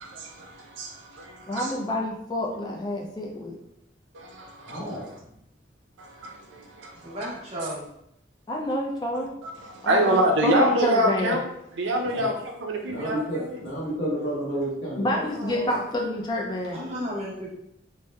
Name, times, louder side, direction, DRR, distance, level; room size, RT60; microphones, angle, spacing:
voice 1, 0.0-1.7 4.1-5.2 6.0-7.2 9.4-11.5 11.7-13.6, right 1 dB, 85° right, 2 dB, 0.4 m, -26 dB
voice 2, 1.5-3.6 8.5-9.4 9.8-11.4 15.0-16.8, left 1 dB, 25° left, 0 dB, 0.3 m, -28 dB
voice 3, 4.7-5.1 12.0-12.3 12.9-15.2 15.5-15.7, right 1 dB, 85° left, -5 dB, 0.9 m, -31 dB
voice 4, 7.0-7.9 15.1-15.5 16.7-17.5, equal, 35° right, -5 dB, 0.7 m, -34 dB
2.7 x 2.0 x 2.2 m, 0.78 s
head